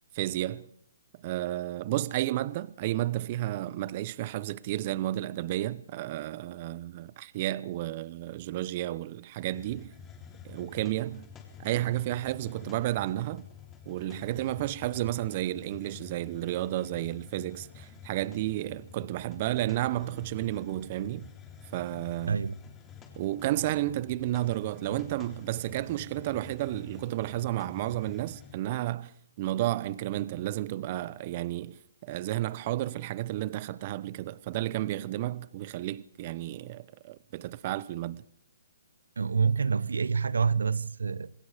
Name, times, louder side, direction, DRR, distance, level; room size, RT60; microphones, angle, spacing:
voice 1, 0.1-0.7 1.2-9.9 10.4-11.3 11.6-13.5 13.9-21.3 21.7-22.4 23.2-38.2, right 15 dB, 40° right, 0.9 m, -32 dB
Hiss, 9.4-28.7, left 7 dB, 15° left, 3.4 m, -49 dB
voice 2, 22.3-22.6 39.2-41.3, right 5 dB, 80° right, 1.0 m, -27 dB
26.5 x 20.0 x 5.1 m
hypercardioid pair, 145°, 0 cm